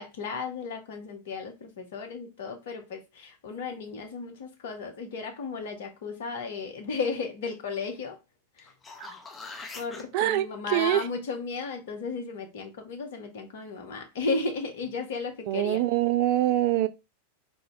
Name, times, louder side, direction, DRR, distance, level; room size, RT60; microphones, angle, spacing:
voice 1, 0.0-8.2 8.6-8.7 9.8-15.8, left 4 dB, 55° left, 0.8 m, -34 dB
sound 1, 8.6-10.0 14.8-14.9, left 3 dB, 20° left, 0.7 m, -42 dB
voice 2, 10.1-11.0 15.5-16.9, right 14 dB, 45° right, 0.4 m, -24 dB
3.7 x 2.6 x 3.1 m
figure-of-eight pair, 90°, 0 cm